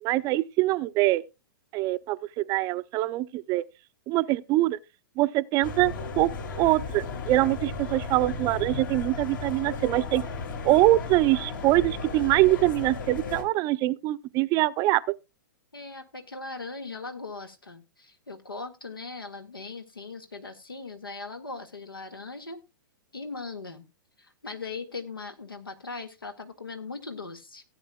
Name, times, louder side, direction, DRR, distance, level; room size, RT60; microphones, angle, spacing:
voice 1, 0.0-1.2 1.7-3.6 4.1-4.8 5.2-6.3 6.6-10.2 10.6-15.0, right 17 dB, 30° right, 0.5 m, -24 dB
sound 1, 5.6-13.4, left 4 dB, 65° left, 2.6 m, -35 dB
voice 2, 15.7-22.6 23.1-23.8 24.2-27.6, left 3 dB, 90° left, 1.8 m, -39 dB
17.0 x 8.9 x 2.3 m
figure-of-eight pair, 110°, 12 cm